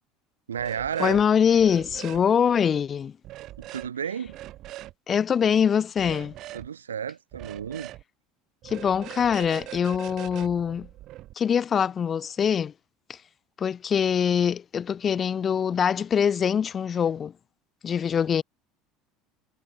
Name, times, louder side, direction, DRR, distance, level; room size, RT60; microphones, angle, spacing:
voice 1, 0.5-1.2 3.6-4.4 6.5-7.9, right 8 dB, 75° right, 1.1 m, -32 dB
sound 1, 0.6-1.2 1.5-2.2 3.2-3.9 4.3-4.9 6.0-6.7 7.3-8.0 8.6-11.3, right 15 dB, 45° right, 1.6 m, -42 dB
voice 2, 1.0-3.2 5.1-6.3 8.6-10.9 11.4-12.7 13.1-13.2 13.6-17.3 17.8-18.4, left 7 dB, 30° left, 0.6 m, -23 dB
figure-of-eight pair, 65°, 0 cm